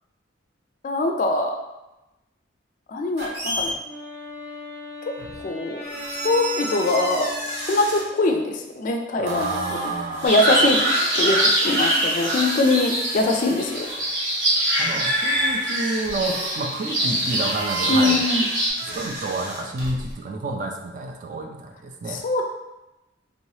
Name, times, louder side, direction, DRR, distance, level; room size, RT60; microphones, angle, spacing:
voice 1, 0.8-1.5 2.9-3.7 5.4-5.8 6.2-7.3 7.7-10.8 11.2-11.4 11.6-13.9 17.9-18.4 22.1-22.4, left 2 dB, 40° left, 3 dB, 0.3 m, -22 dB
sound 1, 3.2-3.7 5.2-5.4 5.8-8.0 9.3-14.1 15.3-15.4 16.0-16.6 16.9-20.1, right 1 dB, 55° right, 0.8 m, -33 dB
Wind instrument woodwind instrument, 3.8-8.5, left 2 dB, 15° left, 0.6 m, -39 dB
voice 2, 9.2-10.8 14.7-18.2 18.8-22.2, right 2 dB, 40° right, 3 dB, 0.3 m, -30 dB
sound 2, 10.2-18.7, right 1 dB, 75° right, 1.1 m, -23 dB
3.0 x 2.7 x 3.1 m, 0.99 s
head